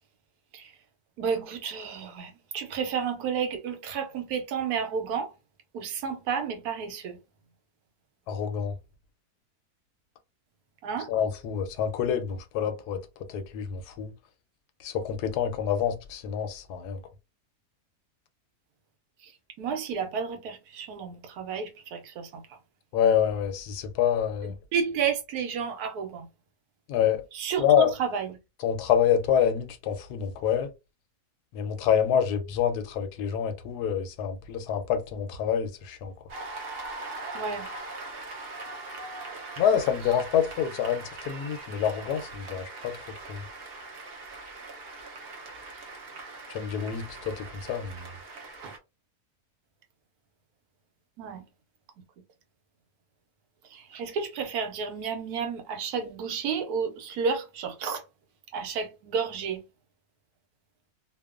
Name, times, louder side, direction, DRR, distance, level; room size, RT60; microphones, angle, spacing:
voice 1, 1.2-5.3 5.7-7.2 10.8-11.1 19.2-19.3 19.6-22.4 24.4-26.3 27.3-28.4 37.3-37.7 48.6-48.7 51.2-51.4 53.7-58.0 58.5-59.6, right 6 dB, 80° right, 1.1 m, -31 dB
voice 2, 8.3-8.8 11.1-13.0 13.3-14.1 14.8-17.0 22.9-24.5 26.9-27.2 27.6-27.9 28.6-30.7 31.5-36.1 39.6-43.0 43.3-43.4 46.5-48.1, left 8 dB, 90° left, 1.1 m, -27 dB
Cheering / Applause, 36.3-48.8, right 3 dB, 55° right, 0.6 m, -41 dB
2.9 x 2.1 x 2.4 m
omnidirectional pair, 1.6 m